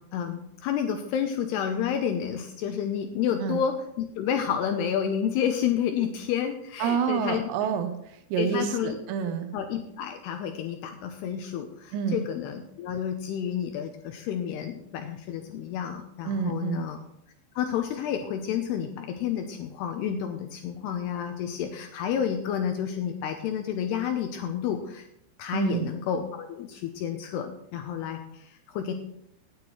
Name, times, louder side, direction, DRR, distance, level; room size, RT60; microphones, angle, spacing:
voice 1, 0.1-7.5 8.4-9.0 9.5-17.0 17.6-25.1 25.4-28.9, left 8 dB, 85° left, 6 dB, 2.5 m, -30 dB
voice 2, 6.8-9.5 11.9-12.2 16.2-16.9 25.5-25.9, right 7 dB, 80° right, 8 dB, 2.8 m, -28 dB
18.0 x 8.8 x 3.1 m, 0.76 s
omnidirectional pair, 5.4 m